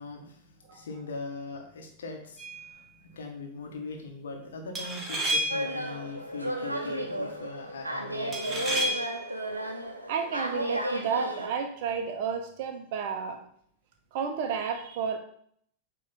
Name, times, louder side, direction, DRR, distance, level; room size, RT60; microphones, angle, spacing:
voice 1, 0.0-9.0, left 3 dB, 65° left, 3 dB, 1.4 m, -41 dB
sound 1, 2.4-2.7 4.8-5.8 8.3-9.2, right 1 dB, 20° right, 1.8 m, -30 dB
sound 2, 5.5-11.5, equal, 85° right, 0.9 m, -33 dB
voice 2, 10.1-13.4 14.1-15.2, right 6 dB, 50° right, 5 dB, 1.0 m, -31 dB
8.4 x 3.4 x 4.1 m, 0.63 s
figure-of-eight pair, 90°, 0 cm